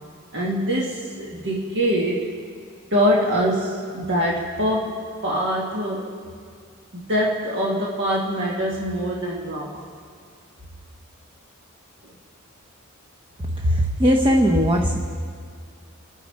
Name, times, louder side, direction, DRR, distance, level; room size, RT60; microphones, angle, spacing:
voice 1, 0.3-2.3 2.9-5.0 5.2-6.1 6.9-9.8, equal, 55° right, -3 dB, 1.6 m, -24 dB
voice 2, 13.6-15.0, equal, 25° right, 2 dB, 0.9 m, -18 dB
28.0 x 9.9 x 4.7 m, 2.1 s
head